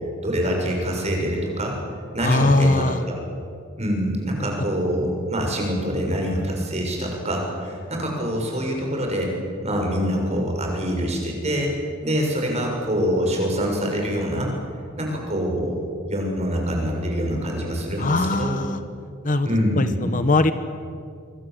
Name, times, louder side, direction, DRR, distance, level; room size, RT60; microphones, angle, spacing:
voice 1, 0.2-1.8 2.1-3.2 3.8-9.3 9.6-11.7 12.0-14.5 15.0-15.8 16.1-18.6 19.4-19.9, equal, 35° right, 1 dB, 6.6 m, -25 dB
voice 2, 2.2-3.0 18.0-18.8 19.2-19.5 19.7-20.5, left 2 dB, 40° left, 11 dB, 1.1 m, -20 dB
27.0 x 23.0 x 7.8 m, 2.3 s
head